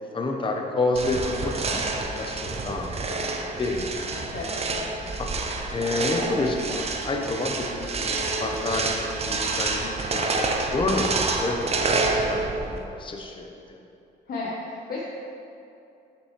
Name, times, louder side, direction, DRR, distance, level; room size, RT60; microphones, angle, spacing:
voice 1, 0.1-4.0 5.2-5.3 5.7-11.1 11.4-13.8, left 2 dB, 25° left, 2 dB, 0.7 m, -29 dB
sound 1, 1.0-12.8, right 3 dB, 30° right, 0.6 m, -28 dB
voice 2, 4.3-4.9 14.3-15.0, left 3 dB, 50° left, -5 dB, 1.0 m, -33 dB
6.7 x 5.6 x 3.2 m, 2.6 s
cardioid pair, 90°, 20 cm